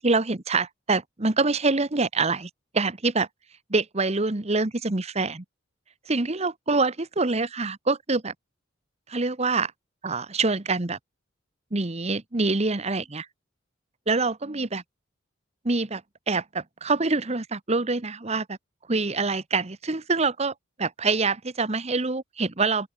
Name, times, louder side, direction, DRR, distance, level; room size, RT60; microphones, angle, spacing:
voice 1, 0.0-3.3 3.7-5.4 6.1-8.3 9.1-9.7 10.0-11.0 11.7-13.3 14.1-14.8 15.6-18.6 18.9-22.9, right 3 dB, 35° right, 1.1 m, -25 dB
open air
head